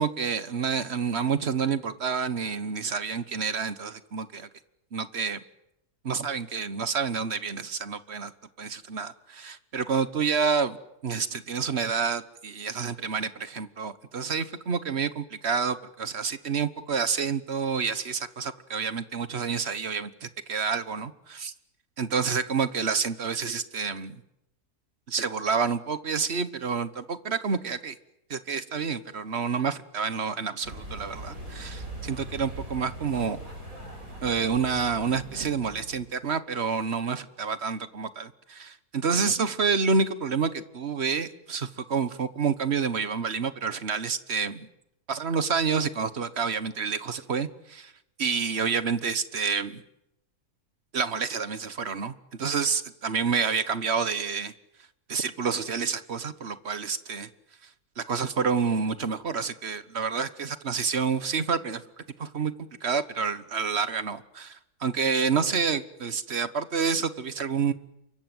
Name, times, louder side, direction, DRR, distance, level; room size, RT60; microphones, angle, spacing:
voice 1, 0.0-4.5 4.9-5.4 6.0-8.3 8.6-10.8 11.0-21.5 22.0-24.2 25.1-27.9 28.3-33.4 34.2-44.7 45.1-47.9 48.2-49.8 50.9-52.1 52.4-54.5 55.1-57.3 58.0-62.5 62.8-67.7, right 5 dB, 45° right, 13 dB, 1.4 m, -28 dB
sound 1, 30.6-36.1, right 1 dB, 65° right, 6.7 m, -41 dB
28.5 x 24.0 x 7.9 m, 0.84 s
omnidirectional pair, 1.6 m